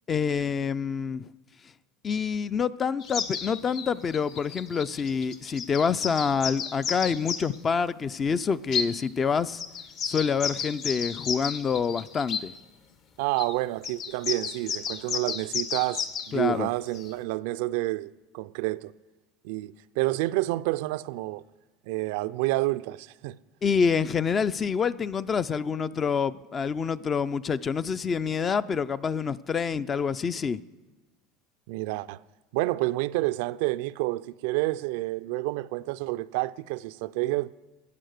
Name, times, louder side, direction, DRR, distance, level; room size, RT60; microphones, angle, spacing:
voice 1, 0.1-1.3 2.0-9.6 10.0-12.5 16.3-16.7 23.6-30.6, left 6 dB, 25° left, 0.4 m, -27 dB
sound 1, 3.0-7.6 8.7-8.9 9.6-12.4 13.4-13.5 13.8-16.3 16.9-17.1, left 6 dB, 45° left, 1.0 m, -32 dB
voice 2, 13.2-18.9 19.4-21.4 21.9-23.4 31.7-32.2 32.5-37.5, right 19 dB, 75° right, 0.4 m, -29 dB
14.5 x 8.6 x 6.5 m
supercardioid pair, 130°, 0 cm